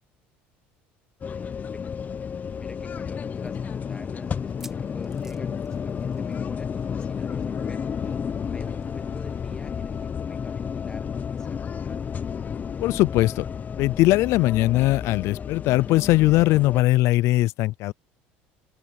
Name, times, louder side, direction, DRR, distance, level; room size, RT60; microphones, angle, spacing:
sound 1, 1.2-16.8, left 7 dB, 30° left, 0.8 m, -32 dB
voice 1, 1.2-1.8 2.6-8.0 8.5-12.3, left 2 dB, 15° left, 1.9 m, -47 dB
sound 2, 1.7-1.8 2.1-2.2 2.8-2.9 4.4-6.5 6.8-7.0 7.3-7.4 8.8-8.9, right 1 dB, 10° right, 2.3 m, -50 dB
sound 3, 3.5-10.1, right 12 dB, 55° right, 2.4 m, -55 dB
voice 2, 12.8-13.4 13.8-17.9, left 18 dB, 65° left, 0.4 m, -20 dB
open air
supercardioid pair, 95°, 5 cm